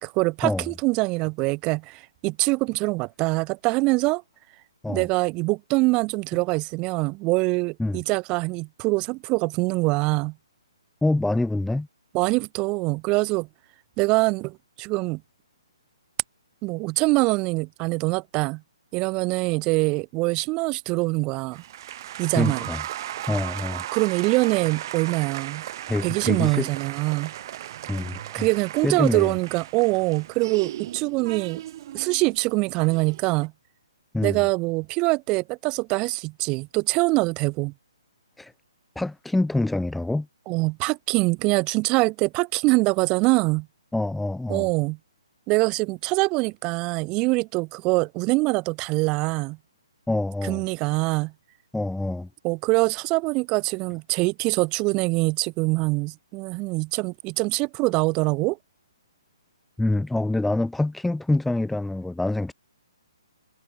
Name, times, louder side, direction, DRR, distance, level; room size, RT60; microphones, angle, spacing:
voice 1, 0.0-4.2 4.9-10.4 12.1-13.5 14.0-15.2 16.6-18.6 18.9-21.6 22.2-22.7 23.9-25.6 26.0-27.3 28.3-31.6 31.9-33.5 34.2-37.7 40.5-43.7 44.5-45.0 45.5-49.6 50.4-51.3 52.4-58.6, right 25 dB, 25° right, 2.0 m, -24 dB
voice 2, 11.0-11.9 22.3-22.8 23.3-23.8 25.9-26.7 27.9-28.5 28.8-29.3 34.1-34.4 38.4-38.5 38.9-40.3 43.9-44.7 50.1-50.6 51.7-52.3 59.8-62.5, left 2 dB, 5° left, 1.2 m, -25 dB
sound 1, 21.5-33.5, right 12 dB, 45° right, 3.8 m, -36 dB
hypercardioid pair, 145°, 3 cm